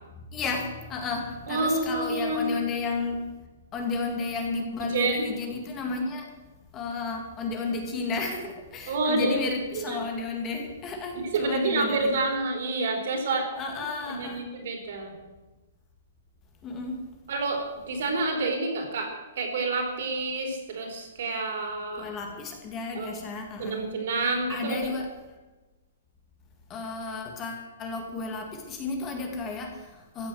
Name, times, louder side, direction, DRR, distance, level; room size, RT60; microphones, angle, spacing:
voice 1, 0.3-3.3 3.7-6.3 6.7-12.2 13.6-14.5 16.6-17.1 22.0-23.9 24.5-25.1 26.7-30.3, left 3 dB, 20° left, 3 dB, 1.9 m, -32 dB
voice 2, 1.5-2.5 4.9-5.3 8.9-9.4 9.8-10.0 11.3-13.5 13.8-15.1 17.3-22.1 23.0-23.1 23.6-24.8, right 3 dB, 55° right, 3 dB, 3.9 m, -28 dB
14.5 x 8.7 x 7.8 m, 1.2 s
hypercardioid pair, 165°, 0 cm